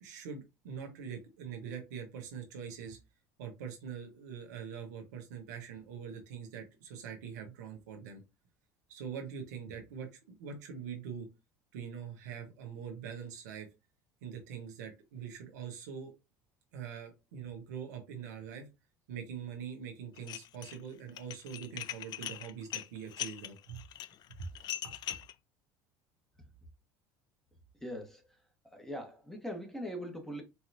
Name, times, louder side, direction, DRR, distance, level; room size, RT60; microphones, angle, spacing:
voice 1, 0.0-3.0 3.4-8.2 8.9-10.1 10.4-11.3 11.7-13.7 14.2-16.1 16.7-18.7 19.1-23.9 24.4-24.5 24.8-25.0, right 7 dB, 85° right, 1.2 m, -43 dB
Dishes pots and pans, 20.2-20.8 21.1-25.3, left 13 dB, 50° left, 0.3 m, -40 dB
voice 2, 27.8-28.4 28.7-30.4, equal, 5° left, 1.5 m, -41 dB
4.5 x 2.9 x 2.7 m
supercardioid pair, 85°, 9 cm